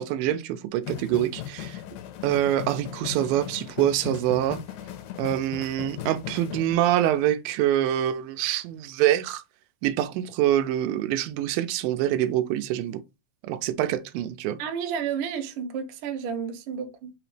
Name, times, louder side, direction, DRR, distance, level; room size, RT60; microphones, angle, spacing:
voice 1, 0.0-1.8 2.2-4.6 5.2-9.4 9.8-13.0 13.4-14.6, right 12 dB, 90° right, 2.3 m, -25 dB
sound 1, 0.8-6.8, left 12 dB, 90° left, 2.4 m, -38 dB
voice 2, 14.6-17.1, right 7 dB, 75° right, 2.1 m, -31 dB
5.5 x 2.9 x 3.2 m
omnidirectional pair, 4.0 m